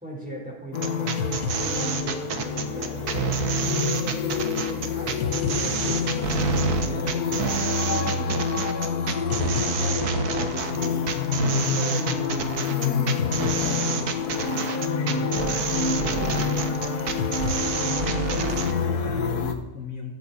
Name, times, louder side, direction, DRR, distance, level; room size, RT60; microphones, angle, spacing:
voice 1, 0.0-8.8 9.6-11.0 11.3-14.7 15.0-17.1, right 1 dB, 5° right, -3 dB, 4.4 m, -38 dB
sound 1, 0.7-19.5, left 6 dB, 80° left, 1.6 m, -27 dB
sound 2, 0.7-18.7, right 6 dB, 75° right, 1.6 m, -28 dB
voice 2, 17.8-20.1, left 5 dB, 65° left, 1 dB, 2.0 m, -36 dB
15.0 x 12.5 x 4.2 m, 0.93 s
omnidirectional pair, 1.6 m